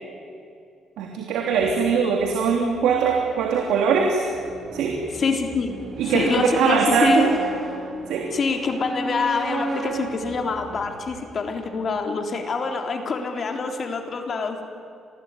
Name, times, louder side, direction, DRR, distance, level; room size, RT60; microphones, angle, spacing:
voice 1, 1.0-4.2 4.7-5.0 6.0-7.3 8.1-8.3, right 5 dB, 90° right, 1 dB, 3.2 m, -21 dB
sound 1, 1.5-11.5, right 2 dB, 40° right, 7.8 m, -35 dB
voice 2, 5.2-5.8 6.1-7.3 8.3-14.6, left 4 dB, 45° left, 4 dB, 3.6 m, -25 dB
27.0 x 20.0 x 9.9 m, 2.4 s
cardioid pair, 90°, 0 cm